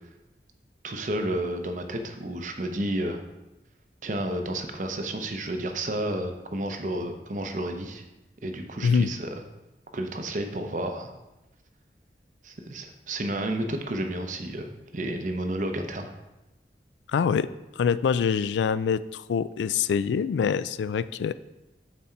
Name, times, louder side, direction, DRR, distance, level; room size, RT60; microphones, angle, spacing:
voice 1, 0.8-3.2 4.0-8.0 8.4-9.4 9.9-11.1 12.4-14.7 14.9-16.1, right 1 dB, 45° right, 5 dB, 0.7 m, -31 dB
voice 2, 17.1-17.5 17.8-21.3, left 6 dB, 90° left, 16 dB, 0.3 m, -25 dB
7.3 x 4.2 x 4.4 m, 0.99 s
head